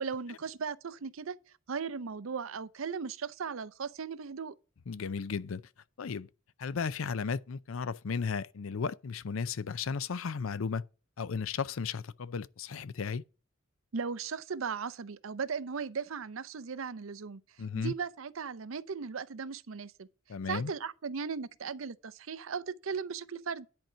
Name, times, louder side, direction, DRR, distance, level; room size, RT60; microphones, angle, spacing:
voice 1, 0.0-1.4 1.7-4.5 13.9-17.4 17.7-20.1 20.5-23.7, right 5 dB, 75° right, 0.6 m, -37 dB
voice 2, 4.9-5.6 6.0-6.3 6.6-10.8 11.2-13.2 17.6-17.9 20.3-20.7, left 5 dB, 75° left, 0.5 m, -34 dB
10.5 x 4.5 x 6.6 m
head